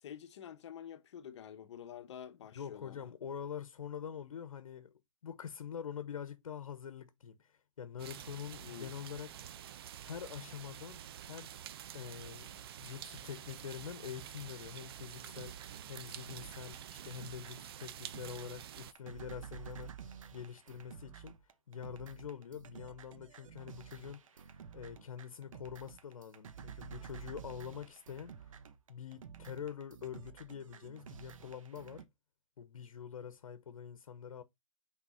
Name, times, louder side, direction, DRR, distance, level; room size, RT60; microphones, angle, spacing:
voice 1, 0.0-3.1 8.6-8.9, left 9 dB, 55° left, 1.2 m, -48 dB
voice 2, 2.5-9.3 10.0-11.5 11.9-15.6 15.9-21.3 21.7-28.3 28.9-32.0 32.6-34.4, left 8 dB, 85° left, 1.0 m, -45 dB
sound 1, 8.0-18.9, right 10 dB, 45° right, 0.7 m, -48 dB
sound 2, 14.8-32.0, right 8 dB, 75° right, 1.1 m, -52 dB
6.1 x 4.2 x 4.2 m
hypercardioid pair, 150°, 17 cm